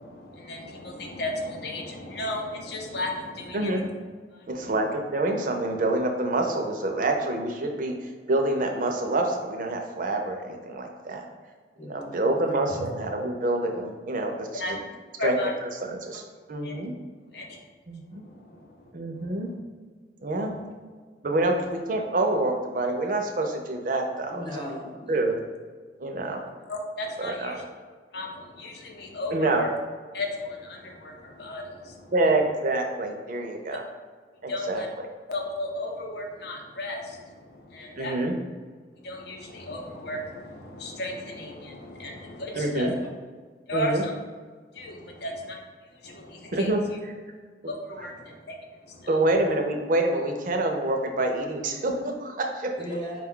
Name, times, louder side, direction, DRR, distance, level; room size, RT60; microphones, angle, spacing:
voice 1, 0.0-3.9 4.3-4.8 12.8-12.9 14.5-14.7 15.2-15.5 16.6-16.8 17.3-17.6 18.1-19.4 26.3-27.6 28.1-29.7 30.1-32.1 34.5-34.9 35.3-38.2 39.0-42.9 43.7-44.1 44.7-45.6 45.9-46.7 47.7-48.6 48.8-49.2, left 1 dB, 60° left, 2 dB, 0.6 m, -35 dB
voice 2, 4.5-7.9 8.3-11.3 11.9-14.6 15.2-15.4 15.8-16.2 16.5-16.9 17.9-18.2 18.9-19.5 20.2-20.5 21.2-24.4 25.1-25.3 26.0-26.4 27.2-27.6 29.3-29.6 32.1-33.8 34.4-34.8 38.0-38.3 42.5-42.9 43.7-44.0 46.5-46.8 49.1-52.7, right 2 dB, 50° right, 3 dB, 0.5 m, -26 dB
voice 3, 11.8-12.4 24.3-25.3 52.8-53.2, equal, 25° left, -3 dB, 0.9 m, -37 dB
4.7 x 2.3 x 3.7 m, 1.5 s
head